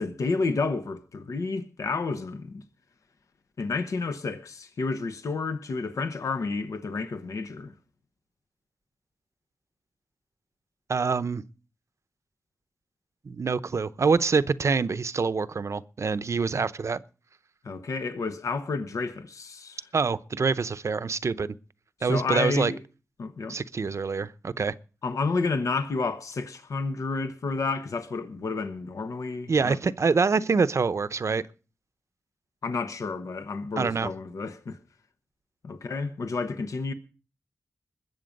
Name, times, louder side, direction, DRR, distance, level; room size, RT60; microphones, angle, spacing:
voice 1, 0.0-2.6 3.6-7.7 17.6-19.9 22.1-22.8 23.2-23.6 25.0-29.8 32.6-34.8 35.6-36.9, left 4 dB, 85° left, 1.1 m, -30 dB
voice 2, 10.9-11.4 13.3-17.0 19.9-21.6 22.0-22.7 23.5-24.7 29.5-31.4 33.8-34.1, right 4 dB, 60° right, 0.7 m, -25 dB
21.0 x 7.6 x 5.3 m
cardioid pair, 55°, 5 cm